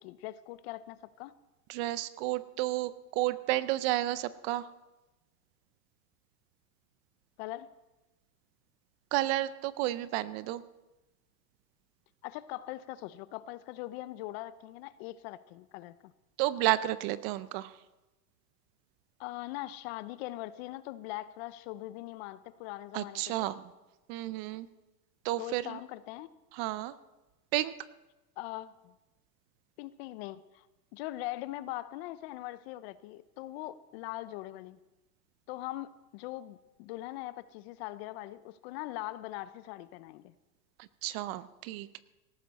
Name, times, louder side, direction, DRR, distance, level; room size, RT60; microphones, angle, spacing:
voice 1, 0.0-1.3 7.4-7.7 12.2-16.1 19.2-23.5 25.4-26.3 28.4-28.9 29.8-30.7 30.9-34.8 35.5-40.3, left 16 dB, 40° left, 16 dB, 0.6 m, -41 dB
voice 2, 1.7-4.6 9.1-10.6 16.4-17.7 22.9-23.6 24.1-24.7 25.2-25.8 26.5-26.9 27.5-27.7 40.8-42.0, right 15 dB, 40° right, 16 dB, 0.6 m, -31 dB
18.0 x 14.0 x 4.1 m, 1.1 s
hypercardioid pair, 120°, 49 cm